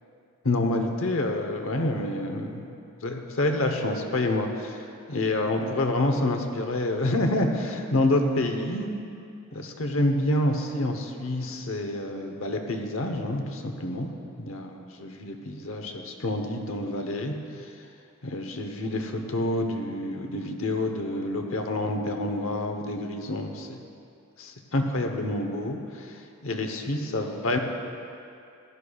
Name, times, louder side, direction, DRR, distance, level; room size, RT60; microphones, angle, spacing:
voice 1, 0.4-2.7 3.0-8.9 9.5-14.1 14.4-17.7 18.2-23.8 24.4-27.6, left 1 dB, 70° left, 4 dB, 0.9 m, -28 dB
15.0 x 11.5 x 2.3 m, 2.6 s
head